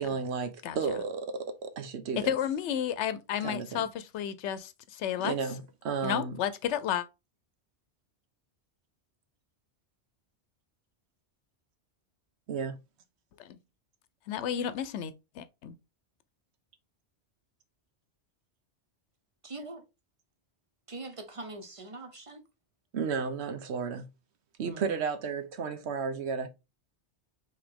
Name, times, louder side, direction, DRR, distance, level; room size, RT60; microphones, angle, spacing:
voice 1, 0.0-2.4 3.4-3.9 5.2-6.4 12.5-12.8 22.9-24.1 24.6-26.5, right 5 dB, 75° right, 1.0 m, -33 dB
voice 2, 2.2-5.3 6.0-7.1 13.4-13.6 14.3-15.8, left 9 dB, 80° left, 0.9 m, -32 dB
voice 3, 19.4-19.8 20.9-22.4 24.6-25.0, right 2 dB, 35° right, 0.6 m, -43 dB
4.8 x 3.0 x 3.5 m
omnidirectional pair, 1.2 m